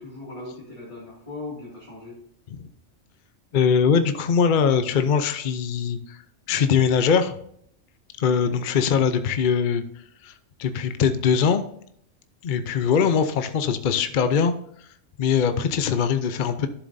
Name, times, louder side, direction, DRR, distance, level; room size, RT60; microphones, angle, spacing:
voice 1, 0.0-2.2 8.4-8.6, left 2 dB, 25° left, -6 dB, 2.3 m, -38 dB
voice 2, 3.5-6.2 6.5-7.3 8.2-9.8 10.2-10.3 10.6-11.6 12.4-14.9 15.2-16.7, left 6 dB, 50° left, 9 dB, 0.7 m, -22 dB
12.5 x 7.2 x 2.6 m, 0.68 s
omnidirectional pair, 1.2 m